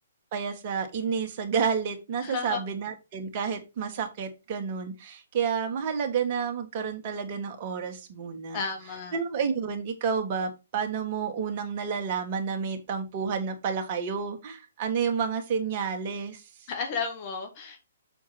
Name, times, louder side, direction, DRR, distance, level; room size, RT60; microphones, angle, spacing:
voice 1, 0.3-8.6 9.1-16.5, right 6 dB, 40° right, 1.9 m, -30 dB
voice 2, 2.2-2.6 8.5-9.2 16.7-17.8, left 5 dB, 40° left, 2.3 m, -33 dB
7.1 x 4.7 x 4.3 m
hypercardioid pair, 135°, 0 cm